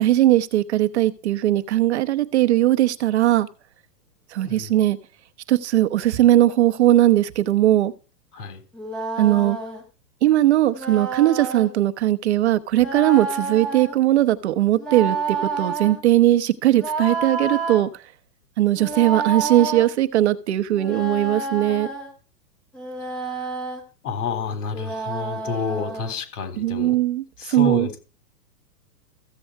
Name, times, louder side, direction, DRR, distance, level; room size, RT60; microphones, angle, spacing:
voice 1, 0.0-3.5 4.3-5.0 5.5-7.9 9.2-9.6 10.2-18.0 18.6-21.9 26.6-27.9, right 14 dB, 40° right, 0.9 m, -19 dB
sound 1, 8.7-9.8 10.7-11.7 12.7-14.0 14.8-16.0 16.8-17.8 18.7-19.9 20.7-22.1 22.7-23.8 24.7-26.1, right 4 dB, ahead, 0.7 m, -29 dB
voice 2, 24.0-27.0 27.4-27.9, left 5 dB, 60° left, 3.7 m, -29 dB
15.0 x 7.7 x 4.6 m
hypercardioid pair, 165°, 50 cm